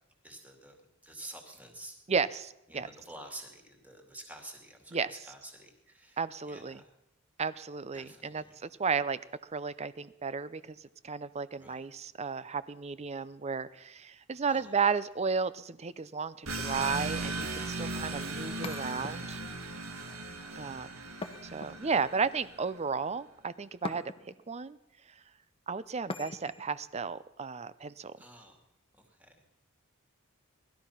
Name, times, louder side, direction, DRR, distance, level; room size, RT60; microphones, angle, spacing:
voice 1, 0.2-0.8 1.0-1.9 2.7-6.2 6.4-6.9 7.9-8.6 11.5-11.8 14.5-14.7 17.8-18.1 20.0-20.4 28.2-28.6 28.9-29.3, right 1 dB, 5° right, 3 dB, 2.4 m, -49 dB
voice 2, 2.1-2.9 4.9-5.1 6.2-6.8 7.4-19.4 20.6-20.9 21.5-24.8 25.7-28.1, right 5 dB, 30° right, 16 dB, 0.5 m, -34 dB
sound 1, 16.5-22.7, right 2 dB, 80° right, 1.9 m, -37 dB
sound 2, 18.6-19.6 21.2-22.2 23.8-24.5 26.1-26.7, left 3 dB, 25° left, 0.9 m, -42 dB
19.0 x 12.5 x 5.7 m, 0.86 s
head